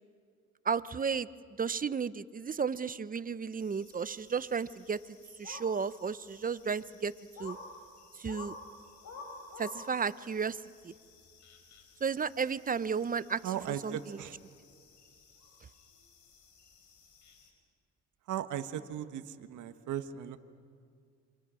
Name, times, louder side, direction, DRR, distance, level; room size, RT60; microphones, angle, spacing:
voice 1, 0.6-1.3 1.6-5.0 5.4-7.1 7.4-7.6 8.1-8.5 9.6-10.6 10.8-10.9 12.0-13.4 13.8-14.2, right 6 dB, 30° right, 16 dB, 0.7 m, -33 dB
sound 1, 3.6-17.5, left 3 dB, 70° left, 4.5 m, -52 dB
voice 2, 13.4-14.4 18.3-20.4, right 10 dB, 80° right, 9 dB, 1.3 m, -37 dB
28.5 x 26.0 x 6.3 m, 2.3 s
cardioid pair, 90°, 30 cm